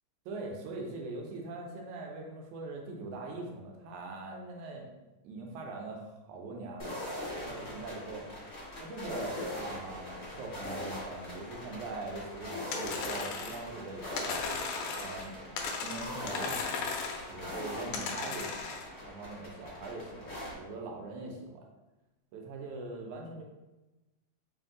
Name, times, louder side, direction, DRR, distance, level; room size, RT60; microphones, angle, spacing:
voice 1, 0.3-4.9 5.2-8.3 8.8-14.3 15.0-15.3 15.8-16.9 17.3-21.6 22.3-23.4, right 3 dB, 80° right, 0 dB, 2.0 m, -42 dB
sound 1, 6.8-20.5, left 1 dB, 50° left, 1.0 m, -41 dB
sound 2, 12.7-13.7 14.2-15.3 15.6-17.3 17.9-18.9, left 5 dB, 80° left, 1.5 m, -36 dB
4.6 x 2.5 x 3.6 m, 1.1 s
omnidirectional pair, 3.5 m